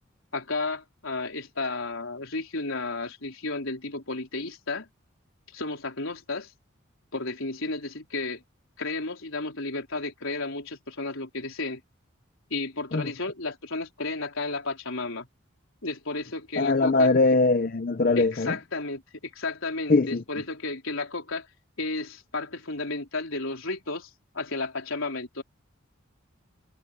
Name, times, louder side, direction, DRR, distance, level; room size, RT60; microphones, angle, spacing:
voice 1, 0.3-4.9 5.5-6.5 7.1-8.4 8.8-11.8 12.5-15.3 15.8-17.1 18.2-21.5 21.8-24.1 24.3-25.4, left 3 dB, 75° left, 4.0 m, -33 dB
voice 2, 16.6-18.6 19.9-20.2, left 3 dB, 45° left, 0.5 m, -21 dB
head